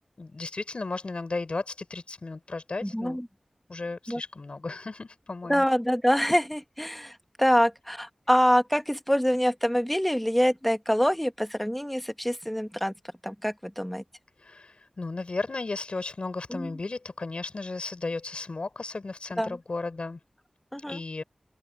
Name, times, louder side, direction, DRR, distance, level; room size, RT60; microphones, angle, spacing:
voice 1, 0.2-3.2 3.7-5.6 14.4-20.2 20.9-21.2, left 3 dB, 65° left, 5.9 m, -35 dB
voice 2, 2.8-3.3 4.1-4.2 5.5-12.9 13.2-14.0 16.5-16.7 19.4-19.6 20.7-21.0, equal, 5° left, 1.9 m, -25 dB
open air
cardioid pair, 40°, 2 cm